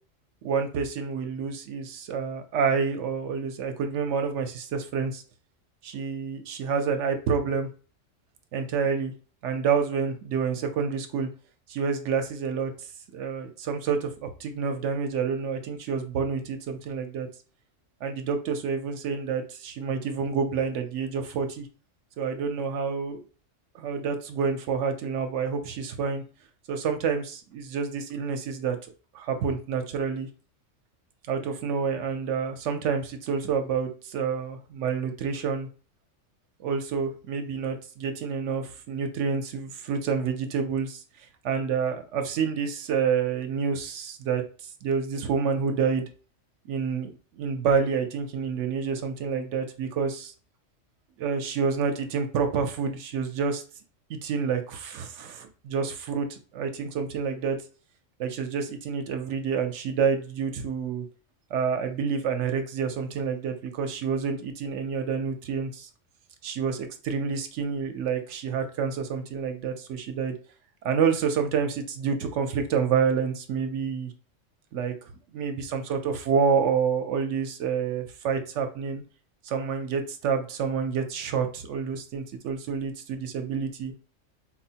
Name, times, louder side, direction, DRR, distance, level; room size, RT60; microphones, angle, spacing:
voice 1, 0.4-5.2 5.8-7.7 8.5-9.1 9.4-11.3 11.7-12.7 13.1-17.3 18.0-21.7 22.2-23.2 23.7-26.2 26.7-28.8 29.1-30.3 31.3-35.7 36.6-41.0 41.4-44.4 44.8-46.1 46.7-47.1 47.4-50.3 51.2-53.6 54.1-57.6 58.2-61.0 61.5-65.9 66.4-70.4 70.8-74.1 74.7-74.9 75.3-79.0 79.4-83.9, right 6 dB, 75° right, 6 dB, 0.9 m, -28 dB
4.4 x 2.0 x 2.7 m, 0.38 s
omnidirectional pair, 1.3 m